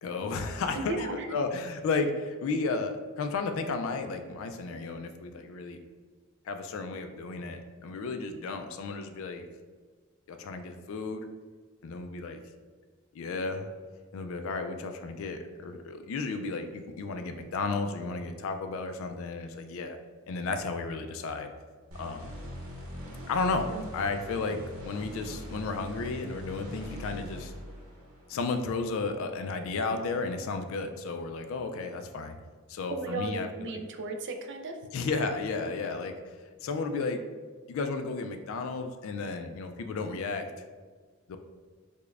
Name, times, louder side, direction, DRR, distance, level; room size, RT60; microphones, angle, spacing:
voice 1, 0.0-5.8 6.5-9.5 10.3-11.2 11.8-12.4 13.1-13.7 14.1-20.0 20.3-21.5 22.0-22.3 23.3-24.6 24.8-27.5 28.3-32.4 32.7-33.8 34.9-36.1 36.6-37.2 37.7-40.5 41.3-41.4, left 3 dB, 65° left, 7 dB, 0.3 m, -33 dB
voice 2, 0.7-1.3 23.7-23.8 32.9-34.8, right 2 dB, 55° right, 4 dB, 0.4 m, -35 dB
sound 1, 21.9-28.4, equal, 85° right, 0.9 m, -42 dB
4.9 x 2.2 x 2.4 m, 1.5 s
head